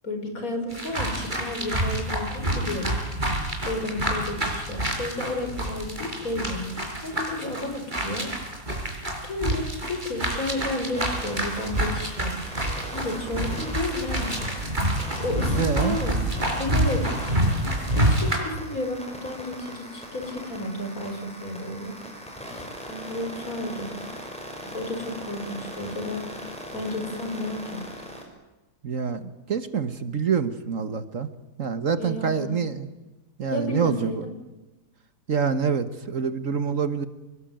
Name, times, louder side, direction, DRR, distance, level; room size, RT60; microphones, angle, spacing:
voice 1, 0.0-3.0 3.6-8.3 9.2-12.5 12.9-14.3 15.2-16.1 16.6-17.4 17.9-22.0 22.8-24.1 24.6-26.2 26.7-27.8 32.0-32.6 33.5-34.2, left 2 dB, 55° left, 5 dB, 5.3 m, -32 dB
sound 1, 0.7-18.4, right 1 dB, 30° right, 5.5 m, -27 dB
sound 2, 10.9-28.2, equal, 5° left, 6.1 m, -40 dB
voice 2, 15.5-16.0 28.8-31.3 31.6-32.9 33.4-34.3 35.3-37.1, right 6 dB, 55° right, 12 dB, 1.6 m, -26 dB
26.0 x 20.5 x 9.0 m, 1.1 s
omnidirectional pair, 1.7 m